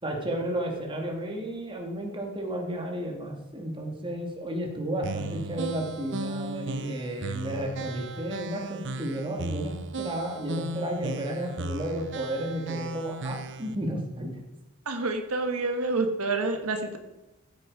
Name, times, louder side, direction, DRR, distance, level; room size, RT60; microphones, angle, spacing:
voice 1, 0.0-14.3, right 1 dB, 25° right, 1 dB, 2.4 m, -32 dB
sound 1, 5.0-13.7, right 2 dB, 55° right, 0.8 m, -36 dB
voice 2, 14.8-17.0, right 3 dB, 90° right, 5 dB, 1.5 m, -28 dB
15.0 x 9.0 x 4.9 m, 1.0 s
head